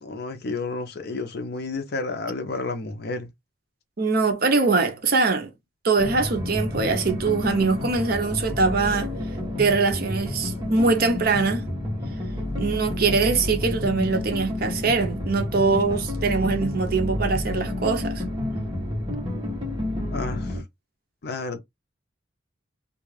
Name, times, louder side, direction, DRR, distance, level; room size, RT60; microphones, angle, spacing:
voice 1, 0.0-3.3 20.1-20.6 21.2-21.6, left 3 dB, 55° left, 0.5 m, -31 dB
voice 2, 4.0-5.5 5.8-9.1 9.6-11.7 12.6-18.2, right 4 dB, 50° right, 0.6 m, -22 dB
sound 1, 6.0-20.6, left 1 dB, 25° right, 0.9 m, -30 dB
2.3 x 2.3 x 3.2 m
head